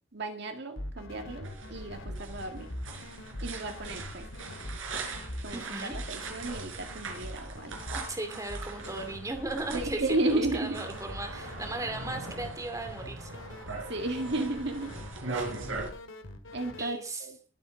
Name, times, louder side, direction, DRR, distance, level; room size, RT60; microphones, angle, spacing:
voice 1, 0.1-2.7 3.4-4.3 5.4-7.8 9.7-10.9 13.9-15.0 15.3-15.5 16.5-17.4, right 2 dB, 60° right, 5 dB, 1.9 m, -33 dB
sound 1, 0.8-16.9, left 1 dB, 75° left, 2.3 m, -43 dB
sound 2, 1.4-15.9, right 3 dB, 80° right, 4.3 m, -41 dB
voice 2, 5.5-6.0 7.9-13.3 16.8-17.2, right 2 dB, 15° right, 6 dB, 2.4 m, -37 dB
21.0 x 8.4 x 3.9 m, 0.36 s
head